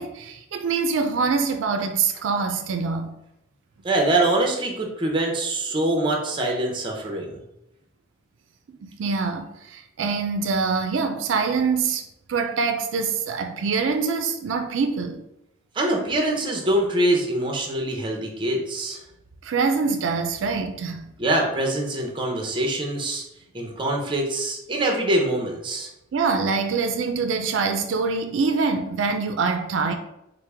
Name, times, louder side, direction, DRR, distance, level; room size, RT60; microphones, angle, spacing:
voice 1, 0.0-3.1 8.7-12.0 12.3-15.2 19.4-21.0 26.1-29.9, right 4 dB, 85° right, 0.4 m, -24 dB
voice 2, 3.8-7.4 15.8-19.0 21.2-23.2 23.5-25.9, right 1 dB, 25° right, 0.6 m, -24 dB
4.4 x 2.1 x 3.3 m
head